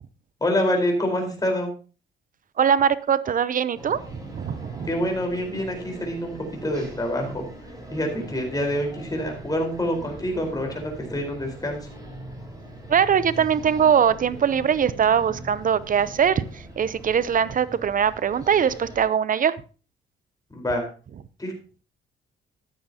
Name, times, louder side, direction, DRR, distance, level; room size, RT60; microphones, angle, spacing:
voice 1, 0.4-1.7 4.9-6.4 6.6-7.4 7.9-11.9 20.5-20.9 21.4-21.5, equal, 20° left, 2 dB, 4.4 m, -26 dB
voice 2, 2.6-4.0 4.3-4.9 12.9-19.5, right 8 dB, 45° right, 17 dB, 0.7 m, -21 dB
sound 1, 3.7-19.0, right 1 dB, 20° right, 5.7 m, -41 dB
13.5 x 9.3 x 2.9 m, 0.37 s
cardioid pair, 90°, 20 cm